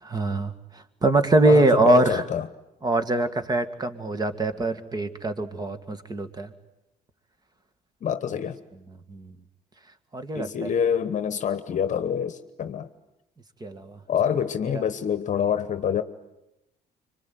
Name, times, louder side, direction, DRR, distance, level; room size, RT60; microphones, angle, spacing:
voice 1, 0.0-2.2 2.8-6.5 9.1-9.4 10.1-10.7 13.6-14.0 14.3-14.4 14.7-14.8, right 2 dB, 25° right, 10 dB, 2.0 m, -23 dB
voice 2, 1.4-2.4 8.0-8.6 10.3-12.9 14.1-16.0, left 8 dB, 45° left, 11 dB, 1.1 m, -26 dB
25.5 x 24.0 x 9.4 m, 0.90 s
cardioid pair, 110°, 17 cm